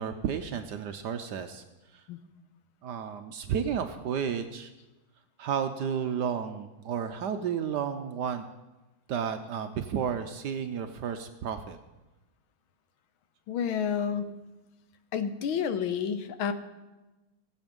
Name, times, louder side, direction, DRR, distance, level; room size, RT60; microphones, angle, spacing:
voice 1, 0.0-1.6 1.9-2.0 2.8-4.7 5.4-8.4 9.1-11.8, right 7 dB, 70° right, 8 dB, 1.1 m, -32 dB
voice 2, 13.5-14.4 15.1-16.5, left 7 dB, 75° left, 10 dB, 1.7 m, -30 dB
18.0 x 7.9 x 5.3 m, 1.1 s
omnidirectional pair, 2.3 m